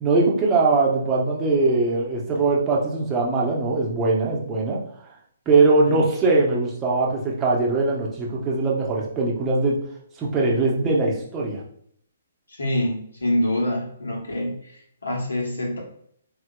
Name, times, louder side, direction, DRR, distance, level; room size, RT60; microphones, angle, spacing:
voice 1, 0.0-5.1 5.5-9.8 10.2-11.6, right 3 dB, 20° right, -3 dB, 0.8 m, -21 dB
voice 2, 12.5-15.8, left 1 dB, 75° left, -1 dB, 1.2 m, -26 dB
4.0 x 2.8 x 2.3 m, 0.66 s
figure-of-eight pair, 130°, 0 cm